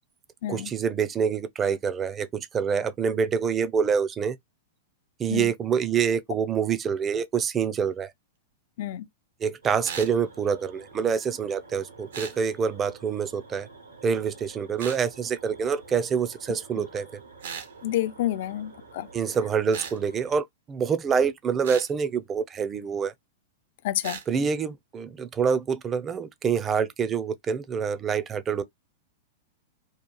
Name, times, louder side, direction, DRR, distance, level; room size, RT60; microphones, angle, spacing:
voice 1, 0.5-4.4 5.2-8.1 9.4-13.7 14.0-17.1 19.1-23.1 24.3-28.6, right 6 dB, 25° right, 0.5 m, -26 dB
sound 1, 9.6-20.4, right 4 dB, 85° right, 1.2 m, -49 dB
sound 2, 9.8-10.1 12.1-12.4 14.8-15.0 17.4-17.7 19.7-20.0 21.6-21.9 24.0-24.3, right 7 dB, 70° right, 0.7 m, -37 dB
voice 2, 17.8-19.1 23.8-24.2, left 13 dB, 55° left, 0.4 m, -29 dB
2.9 x 2.4 x 2.3 m
figure-of-eight pair, 100°, 0 cm